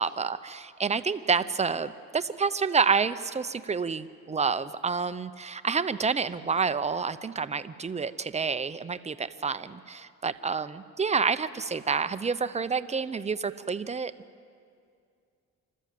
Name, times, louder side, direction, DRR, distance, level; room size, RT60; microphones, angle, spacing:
voice 1, 0.0-14.1, right 5 dB, 20° right, 12 dB, 0.7 m, -28 dB
26.5 x 13.0 x 7.6 m, 2.3 s
cardioid pair, 90°, 30 cm